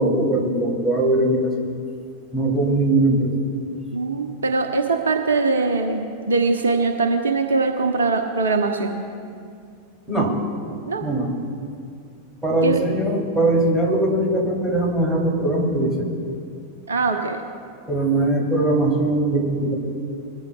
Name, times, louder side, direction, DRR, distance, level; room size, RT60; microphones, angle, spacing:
voice 1, 0.0-1.5 2.3-3.3 10.1-10.3 11.0-11.3 12.4-15.9 17.9-19.7, right 2 dB, 5° right, -3 dB, 3.3 m, -20 dB
voice 2, 3.9-9.0 10.9-11.0 12.6-12.8 16.9-17.4, right 3 dB, 70° right, 5 dB, 0.9 m, -22 dB
22.0 x 14.5 x 2.4 m, 2.3 s
figure-of-eight pair, 90°, 0 cm